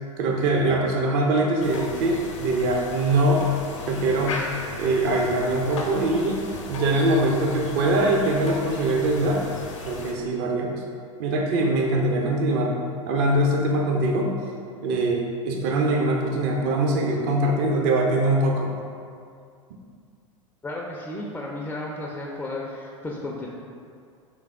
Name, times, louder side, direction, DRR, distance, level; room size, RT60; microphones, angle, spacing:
voice 1, 0.2-3.4 3.9-4.4 4.8-9.4 9.8-10.8 11.2-12.7 13.1-14.3 14.8-18.7, right 2 dB, 50° right, 0 dB, 0.5 m, -22 dB
sound 1, 1.6-10.1, left 4 dB, 65° left, 0.6 m, -36 dB
voice 2, 20.6-23.5, left 2 dB, 10° left, -2 dB, 0.3 m, -33 dB
3.4 x 3.3 x 3.4 m, 2.3 s
figure-of-eight pair, 80°, 17 cm